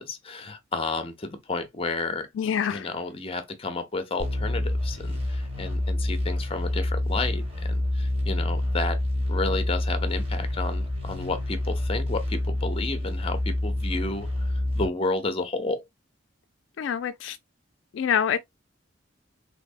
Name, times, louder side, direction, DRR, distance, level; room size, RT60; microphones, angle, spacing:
voice 1, 0.0-2.3 2.7-9.0 9.3-15.8, left 3 dB, 30° left, 0.7 m, -31 dB
voice 2, 2.4-2.9 16.8-17.4 17.9-18.4, left 8 dB, 70° left, 0.3 m, -26 dB
sound 1, 4.2-14.9, left 1 dB, 30° right, 1.5 m, -27 dB
3.5 x 3.3 x 2.4 m
head